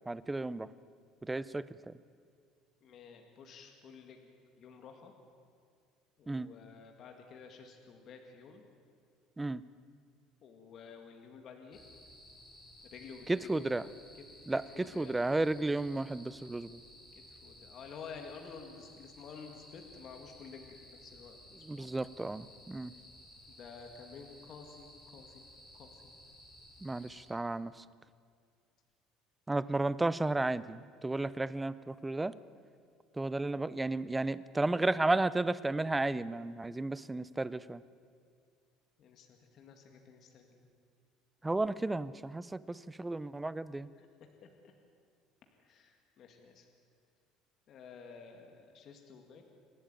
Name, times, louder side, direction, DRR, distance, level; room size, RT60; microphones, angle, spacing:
voice 1, 0.1-0.7 1.2-1.9 6.3-6.5 9.4-9.6 13.3-13.8 14.5-16.8 21.6-22.9 26.8-27.7 29.5-32.4 33.2-37.8 41.4-43.9, right 2 dB, 5° right, 17 dB, 0.4 m, -33 dB
voice 2, 2.8-4.3 4.6-5.1 6.2-8.6 10.4-11.8 12.9-13.7 14.5-15.2 17.3-21.9 23.5-25.4 25.7-26.1 39.0-40.6 44.0-44.1 44.4-44.5 45.6-46.7 47.7-49.4, left 5 dB, 35° left, 3 dB, 2.0 m, -51 dB
sound 1, 11.7-27.2, left 1 dB, 15° left, 5.8 m, -56 dB
27.0 x 12.5 x 9.2 m, 2.2 s
cardioid pair, 180°, 0 cm